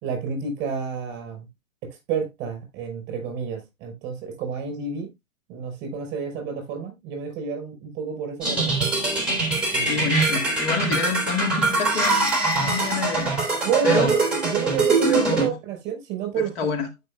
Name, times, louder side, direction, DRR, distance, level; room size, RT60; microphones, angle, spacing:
voice 1, 0.0-1.4 2.1-5.1 5.5-8.9 9.7-10.1 13.6-16.5, right 6 dB, 30° right, 5.4 m, -29 dB
sound 1, 8.4-15.4, right 3 dB, 5° right, 3.5 m, -23 dB
voice 2, 9.8-12.3 12.6-13.3 13.8-14.2 15.1-15.5 16.4-16.9, left 5 dB, 45° left, 2.0 m, -28 dB
15.5 x 5.7 x 2.4 m
hypercardioid pair, 125°, 39 cm